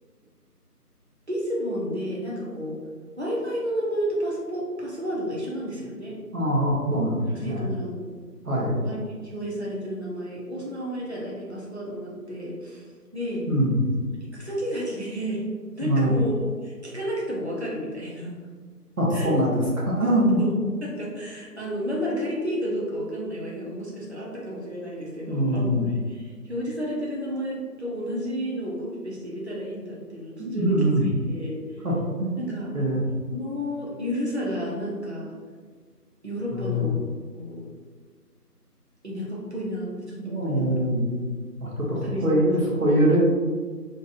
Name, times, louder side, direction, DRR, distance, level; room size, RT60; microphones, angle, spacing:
voice 1, 1.3-2.8 3.2-6.2 7.3-8.2 8.8-13.5 14.3-15.4 15.8-18.4 19.1-19.4 20.4-20.5 20.8-31.8 32.4-32.7 33.3-35.3 36.2-37.0 37.3-37.7 39.0-40.9 42.0-42.3, equal, 45° right, -5 dB, 0.6 m, -31 dB
voice 2, 6.3-7.7 8.4-8.8 13.5-13.8 15.8-16.1 19.0-20.4 25.3-25.9 30.4-31.1 31.8-31.9 32.2-32.3 32.7-33.0 36.5-36.9 40.2-41.2 41.6-43.2, right 1 dB, 60° right, -5 dB, 1.1 m, -23 dB
2.9 x 2.7 x 2.5 m, 1.5 s
figure-of-eight pair, 175°, 48 cm